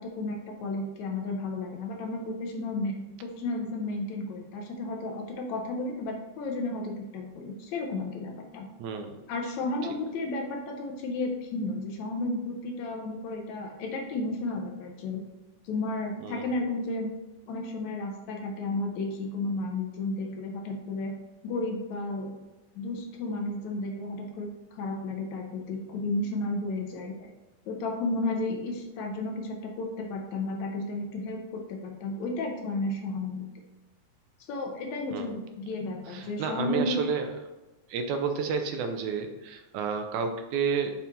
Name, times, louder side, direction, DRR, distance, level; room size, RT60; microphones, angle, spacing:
voice 1, 0.0-8.7 9.3-15.2 15.6-17.1 17.5-21.1 21.4-22.4 22.8-27.3 27.7-33.5 34.5-37.0, left 2 dB, 70° left, 2 dB, 2.1 m, -33 dB
voice 2, 8.8-9.2 16.2-16.5 35.1-35.3 36.1-37.3 37.9-40.9, right 6 dB, 80° right, 5 dB, 2.0 m, -30 dB
7.5 x 4.3 x 4.0 m, 1.1 s
omnidirectional pair, 3.6 m